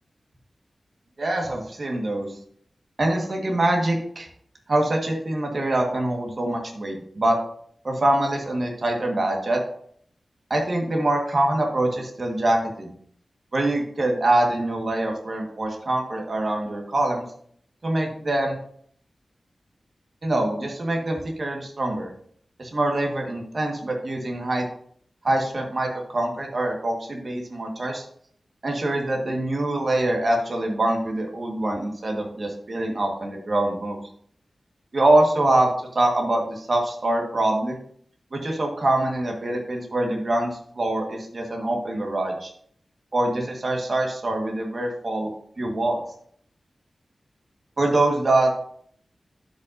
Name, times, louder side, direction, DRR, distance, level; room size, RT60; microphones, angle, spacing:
voice 1, 1.2-2.3 3.0-4.3 4.7-7.4 7.8-9.6 10.5-12.9 13.5-17.2 17.8-18.6 20.2-22.1 22.6-24.6 25.2-28.0 28.6-34.0 34.9-37.8 38.3-42.5 43.1-45.3 45.6-46.0 47.8-48.5, right 1 dB, 45° right, 1 dB, 1.5 m, -24 dB
11.5 x 5.3 x 2.6 m, 0.62 s
wide cardioid pair, 115°, 0 cm